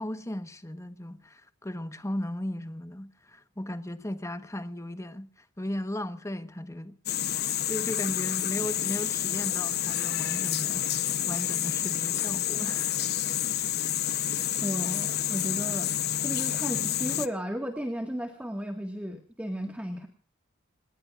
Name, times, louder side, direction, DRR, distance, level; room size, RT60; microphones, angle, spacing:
voice 1, 0.0-7.0 7.6-13.0, left 1 dB, 15° left, 1.2 m, -36 dB
sound 1, 7.1-17.3, left 11 dB, 50° left, 0.9 m, -29 dB
voice 2, 14.6-15.9 16.2-20.1, equal, 5° right, 1.8 m, -34 dB
28.0 x 19.5 x 2.5 m
head